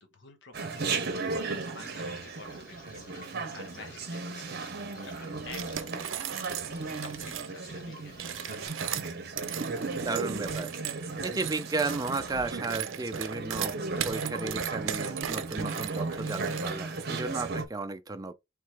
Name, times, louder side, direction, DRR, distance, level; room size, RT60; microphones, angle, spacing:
voice 1, 0.0-6.5 7.0-8.8, left 4 dB, 65° left, 0.9 m, -50 dB
Chatter, 0.5-17.6, right 3 dB, 55° right, 0.8 m, -35 dB
sound 1, 0.7-8.7, left 2 dB, 45° left, 1.9 m, -53 dB
sound 2, 5.5-7.5 8.1-17.0, right 10 dB, 90° right, 0.5 m, -37 dB
voice 2, 10.0-10.7 11.0-13.8 14.0-18.3, right 3 dB, 20° right, 0.4 m, -34 dB
3.4 x 3.1 x 4.5 m
head